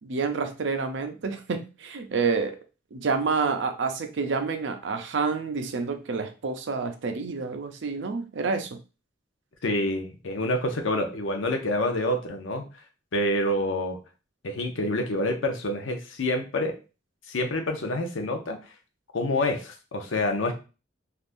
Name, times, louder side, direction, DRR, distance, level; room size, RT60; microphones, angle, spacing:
voice 1, 0.0-2.6 2.9-8.7, right 4 dB, 65° right, 7 dB, 0.5 m, -28 dB
voice 2, 9.6-12.6 13.1-14.0 14.4-16.8 17.3-18.6 19.1-20.5, left 1 dB, 80° left, 4 dB, 0.7 m, -27 dB
3.4 x 2.4 x 2.5 m, 0.32 s
head